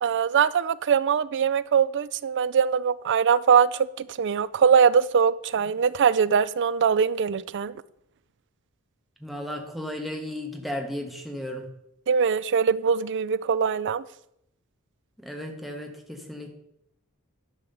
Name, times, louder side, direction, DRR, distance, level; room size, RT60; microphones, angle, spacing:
voice 1, 0.0-7.7 12.1-14.0, right 6 dB, 55° right, 0.4 m, -22 dB
voice 2, 9.2-11.7 15.2-16.5, left 1 dB, ahead, 1.4 m, -34 dB
11.5 x 4.8 x 6.9 m
head